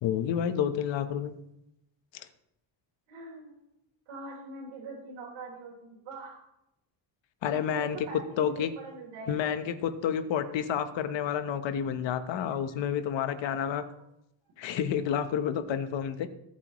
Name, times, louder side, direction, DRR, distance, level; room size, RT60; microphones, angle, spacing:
voice 1, 0.0-1.3 2.1-2.3 7.4-8.1 8.4-8.7 9.3-13.8 14.6-16.3, left 8 dB, 65° left, 9 dB, 1.2 m, -30 dB
voice 2, 3.1-3.6 4.1-6.4 7.5-9.5, right 3 dB, 80° right, -4 dB, 3.8 m, -43 dB
19.5 x 8.6 x 3.1 m, 0.83 s
cardioid pair, 180°, 48 cm